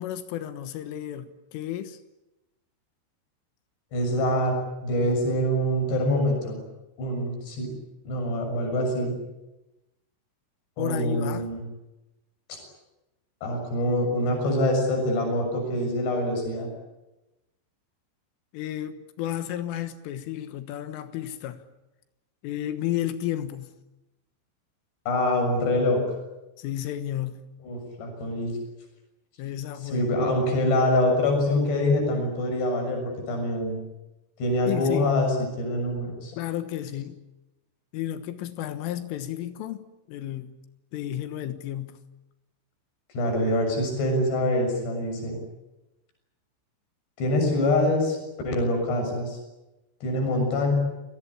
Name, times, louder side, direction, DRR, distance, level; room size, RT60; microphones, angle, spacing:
voice 1, 0.0-2.0 10.8-11.5 18.5-21.6 22.4-23.7 26.6-27.5 29.4-30.2 34.7-35.1 36.3-37.2 37.9-40.6 40.9-42.0, left 12 dB, 85° left, 3.8 m, -32 dB
voice 2, 3.9-4.6 4.8-6.6 7.0-7.7 8.1-9.2 10.8-11.6 12.5-12.6 13.4-16.7 25.1-26.0 27.6-28.5 29.9-33.8 34.4-36.3 43.1-45.4 47.2-48.2 48.5-49.4 50.0-50.7, left 1 dB, 60° left, 8.8 m, -25 dB
28.5 x 18.5 x 10.0 m
omnidirectional pair, 5.6 m